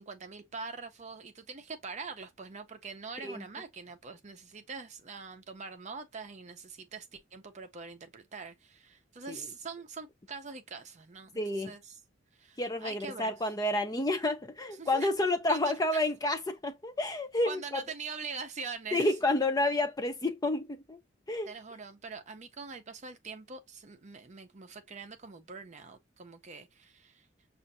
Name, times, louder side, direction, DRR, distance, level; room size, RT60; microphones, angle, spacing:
voice 1, 0.0-12.0 12.3-13.4 14.7-15.1 15.5-16.0 17.4-19.1 21.5-27.3, right 4 dB, 40° right, 0.6 m, -43 dB
voice 2, 11.4-11.7 12.6-17.8 18.9-21.0 21.3-21.5, left 1 dB, 20° left, 0.5 m, -30 dB
6.3 x 2.5 x 2.6 m
head